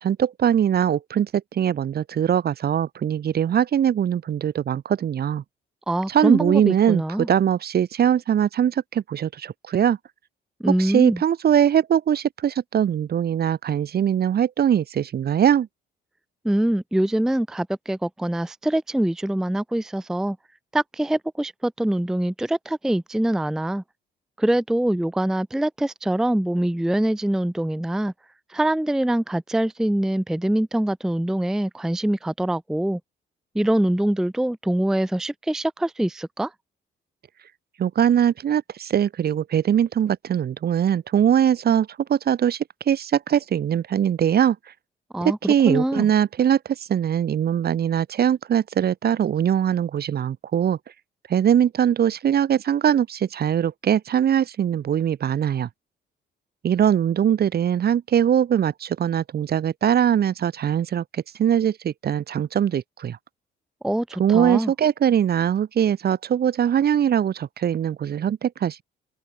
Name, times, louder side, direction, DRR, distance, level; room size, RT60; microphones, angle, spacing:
voice 1, 0.0-5.4 6.1-7.0 7.3-10.0 10.8-15.7 37.8-44.6 45.2-50.8 51.3-55.7 56.6-63.2 64.2-68.8, right 9 dB, 50° right, 1.1 m, -21 dB
voice 2, 5.9-7.3 10.6-11.2 16.4-20.4 20.7-23.8 24.4-28.1 28.5-33.0 33.5-36.5 45.1-46.1 63.8-64.7, right 1 dB, 5° right, 0.5 m, -24 dB
open air
cardioid pair, 90°, 20 cm